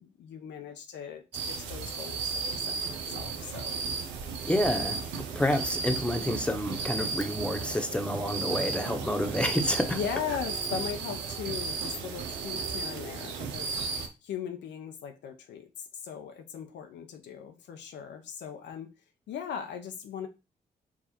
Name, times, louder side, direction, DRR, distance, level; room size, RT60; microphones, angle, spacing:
voice 1, 0.0-3.8 4.7-5.0 9.9-18.9 19.3-20.3, left 8 dB, 80° left, 0.7 m, -39 dB
sound 1, 1.3-14.1, right 5 dB, 90° right, 0.6 m, -34 dB
voice 2, 4.4-5.0 5.3-10.0, left 1 dB, 5° left, 1.0 m, -29 dB
4.7 x 2.4 x 4.3 m
hypercardioid pair, 40°, 18 cm